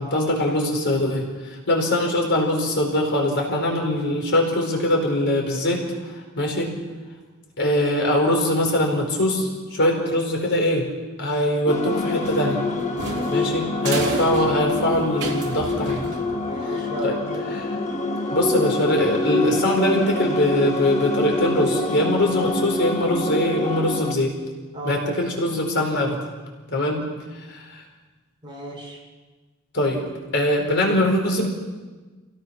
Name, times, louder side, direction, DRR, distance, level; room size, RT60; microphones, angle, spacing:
voice 1, 0.0-6.7 7.6-10.9 11.2-12.6 13.3-16.0 17.0-17.2 17.5-17.8 18.3-24.4 24.8-26.2 26.7-27.1 27.3-27.8 29.7-30.0 30.3-31.5, left 1 dB, 55° left, 1 dB, 4.8 m, -22 dB
sound 1, 11.7-24.1, left 2 dB, 35° left, 1.7 m, -26 dB
sound 2, 12.2-16.7, right 2 dB, 55° right, 3.8 m, -32 dB
voice 2, 13.0-13.5 16.4-17.5 24.7-25.1 28.4-29.0, right 1 dB, 25° right, -3 dB, 6.6 m, -34 dB
28.5 x 18.0 x 6.0 m, 1.3 s
head